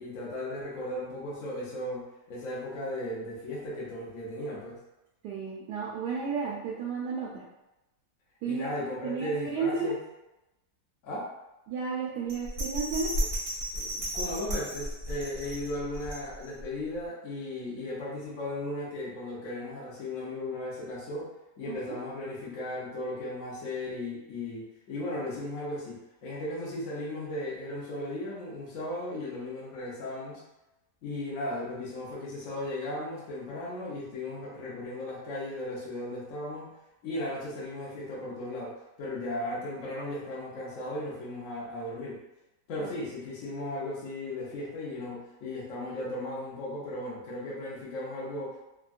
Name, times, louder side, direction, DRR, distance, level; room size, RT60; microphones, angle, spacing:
voice 1, 0.0-4.8 8.5-10.0 11.0-11.3 13.7-21.3 21.6-30.4 31.0-36.7 37.0-42.2 42.7-48.6, left 1 dB, 60° left, -6 dB, 1.1 m, -36 dB
voice 2, 5.2-7.4 8.4-8.7 9.0-9.9 11.7-13.1 21.7-21.9 42.8-42.9, right 5 dB, 80° right, -5 dB, 1.1 m, -32 dB
Bell, 12.3-16.6 17.0-17.1, equal, 45° right, 0.8 m, -34 dB
3.5 x 2.1 x 2.4 m, 0.97 s
omnidirectional pair, 1.8 m